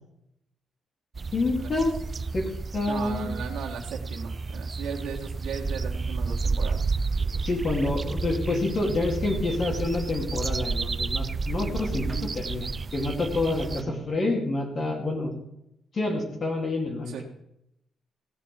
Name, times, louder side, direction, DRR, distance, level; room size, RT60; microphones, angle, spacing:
sound 1, 1.1-13.8, right 4 dB, 25° right, 0.5 m, -31 dB
voice 1, 1.3-1.9 2.3-3.3 7.4-15.3 15.9-17.2, left 2 dB, 35° left, 1 dB, 2.5 m, -28 dB
voice 2, 2.9-6.9 12.0-12.3 17.1-17.2, right 6 dB, 85° right, -3 dB, 1.7 m, -37 dB
16.0 x 9.1 x 5.3 m, 0.81 s
cardioid pair, 150°, 0 cm